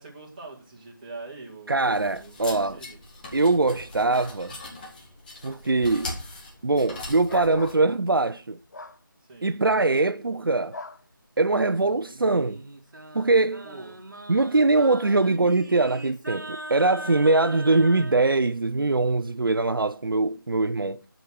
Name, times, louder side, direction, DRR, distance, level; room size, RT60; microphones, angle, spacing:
voice 1, 0.0-3.0 9.3-9.5 13.6-13.9, right 3 dB, 20° right, 2.1 m, -43 dB
voice 2, 1.7-2.8 3.3-4.5 5.4-6.2 6.6-8.6 9.4-10.8 11.4-12.6 13.1-13.7 14.3-21.0, right 3 dB, 80° right, 0.5 m, -22 dB
sound 1, 1.8-7.7, left 2 dB, 25° left, 1.9 m, -41 dB
sound 2, 7.3-7.8 8.7-9.0 10.7-11.0, left 3 dB, 55° left, 0.6 m, -38 dB
Singing, 12.1-18.2, right 1 dB, 60° right, 1.6 m, -40 dB
7.8 x 5.1 x 6.0 m
figure-of-eight pair, 160°, 12 cm